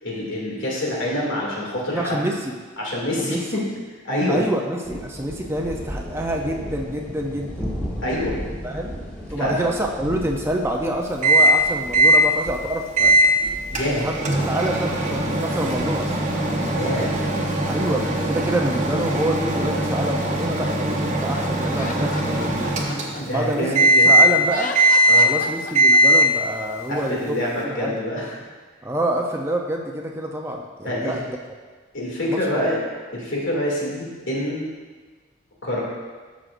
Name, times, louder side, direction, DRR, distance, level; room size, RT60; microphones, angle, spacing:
voice 1, 0.0-2.2 2.8-3.6 4.0-4.4 8.0-8.4 9.4-9.6 13.7-14.1 16.7-17.1 23.1-24.2 25.1-25.3 26.9-28.3 30.8-31.2 31.9-32.8 33.1-34.7 35.6-35.8, left 1 dB, 75° left, -4 dB, 2.4 m, -26 dB
voice 2, 1.9-2.5 3.2-3.4 4.3-7.6 8.6-8.9 9.3-13.2 13.8-16.1 17.7-22.8 23.3-24.7 25.2-27.4 27.6-28.0 28.8-31.4 32.3-32.4, right 1 dB, 15° right, 1 dB, 0.5 m, -27 dB
sound 1, 4.8-17.3, equal, 5° left, 1.2 m, -36 dB
Microwave oven, 11.2-11.6 11.9-12.3 13.0-13.3 13.7-23.4 23.7-24.4 24.7-25.4 25.7-26.4, right 1 dB, 35° right, 0.9 m, -19 dB
Laughter, 21.7-24.0 24.4-26.2, left 4 dB, 40° left, 0.5 m, -34 dB
12.5 x 6.2 x 2.5 m, 1.4 s
head